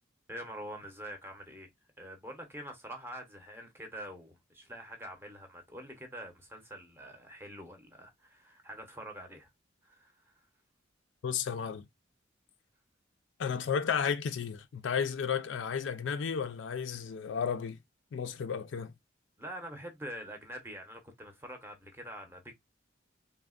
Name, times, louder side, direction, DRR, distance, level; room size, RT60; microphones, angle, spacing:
voice 1, 0.3-1.7 2.0-9.5 9.8-10.4 19.4-22.5, equal, 10° right, 0.6 m, -45 dB
voice 2, 11.2-11.9 13.4-17.8 18.1-18.9, left 7 dB, 70° left, 0.4 m, -33 dB
3.3 x 2.1 x 2.3 m
head